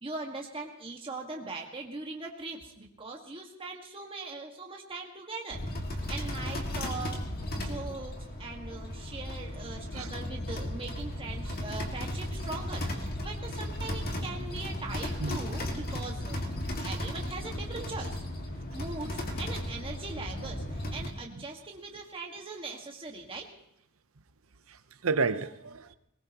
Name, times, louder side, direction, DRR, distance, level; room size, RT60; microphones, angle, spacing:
voice 1, 0.0-5.6 6.1-7.2 7.6-16.4 16.8-18.2 18.7-23.5, right 3 dB, 25° right, 0 dB, 1.7 m, -40 dB
sound 1, 5.5-21.1, left 1 dB, 45° left, 2.0 m, -35 dB
voice 2, 24.7-25.9, right 4 dB, 70° right, 12 dB, 0.8 m, -31 dB
21.0 x 19.0 x 3.0 m, 0.78 s
head